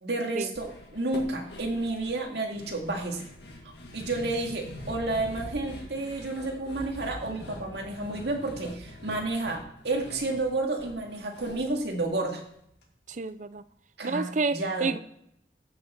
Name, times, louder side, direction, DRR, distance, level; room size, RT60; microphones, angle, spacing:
voice 1, 0.0-0.7 0.9-3.2 3.9-12.4 14.0-14.9, right 2 dB, 60° right, 1 dB, 2.1 m, -31 dB
sound 1, 0.6-12.8 13.1-13.2 13.6-13.7, left 1 dB, 60° left, 2.1 m, -44 dB
voice 2, 13.1-13.6 14.0-15.0, right 3 dB, 40° right, 14 dB, 0.5 m, -30 dB
14.5 x 6.7 x 4.5 m, 0.75 s
head